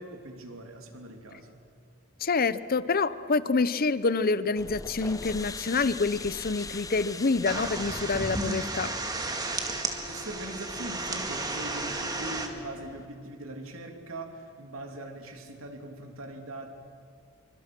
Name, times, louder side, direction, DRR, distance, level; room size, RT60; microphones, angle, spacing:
voice 1, 0.0-1.5 10.1-16.7, right 1 dB, 90° right, 4 dB, 2.9 m, -41 dB
voice 2, 2.2-8.9, left 4 dB, 45° left, 15 dB, 0.8 m, -27 dB
sound 1, 4.6-13.1, left 3 dB, 15° left, 0.8 m, -43 dB
sound 2, 7.5-12.5, right 2 dB, 20° right, 2.1 m, -33 dB
27.5 x 24.5 x 6.1 m, 2.5 s
head